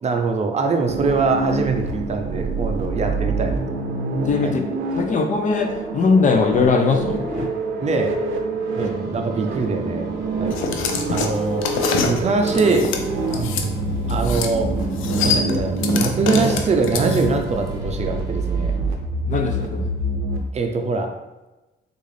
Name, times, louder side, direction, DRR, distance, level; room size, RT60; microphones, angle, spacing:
voice 1, 0.0-3.8 4.4-4.5 7.8-8.1 8.8-10.1 10.4-10.8 11.1-11.7 12.0-12.9 14.1-14.7 15.2-18.7 20.5-21.1, right 4 dB, 35° right, 4 dB, 0.5 m, -23 dB
sound 1, 0.9-20.4, right 2 dB, 90° right, 0.6 m, -26 dB
voice 2, 4.3-4.6 5.0-7.5 19.3-19.9, left 4 dB, 40° left, 4 dB, 0.6 m, -20 dB
sound 2, 8.8-18.8, right 3 dB, 15° right, 1.4 m, -34 dB
sound 3, 10.5-13.7 14.1-14.5 14.8-17.4, left 5 dB, 90° left, 0.4 m, -25 dB
3.7 x 2.5 x 3.2 m, 1.1 s
cardioid pair, 90°, 20 cm